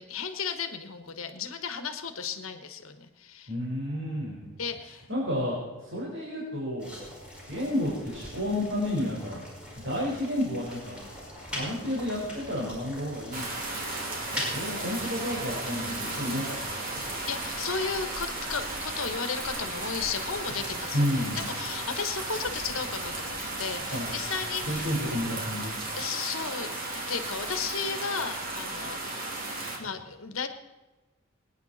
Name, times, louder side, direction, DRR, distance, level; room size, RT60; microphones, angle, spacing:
voice 1, 0.0-3.5 4.6-5.1 15.6-16.5 17.0-24.8 25.9-26.7 27.1-29.3 29.8-30.5, left 6 dB, 75° left, 8 dB, 1.3 m, -34 dB
voice 2, 3.5-4.5 5.1-6.9 7.5-9.4 9.8-11.0 11.5-13.5 13.7-13.8 14.3-16.6 20.9-21.4 23.9-24.1 24.7-25.9, left 1 dB, 60° right, -6 dB, 4.6 m, -31 dB
sound 1, 6.8-25.4, equal, 5° right, 5.3 m, -43 dB
sound 2, 13.3-29.8, right 2 dB, 45° right, 3.0 m, -35 dB
23.5 x 9.9 x 4.2 m, 1.2 s
head